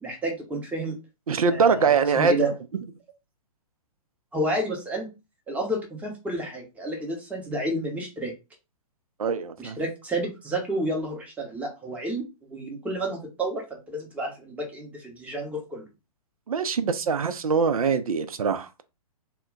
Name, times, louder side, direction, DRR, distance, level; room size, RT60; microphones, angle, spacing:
voice 1, 0.0-1.0 1.5-2.5 4.3-5.1 5.5-8.3 9.6-15.9, right 1 dB, 5° right, 0.7 m, -30 dB
voice 2, 1.3-2.3 9.2-9.8 16.5-18.8, right 5 dB, 70° right, 0.5 m, -23 dB
2.2 x 2.1 x 3.7 m
figure-of-eight pair, 120°, 19 cm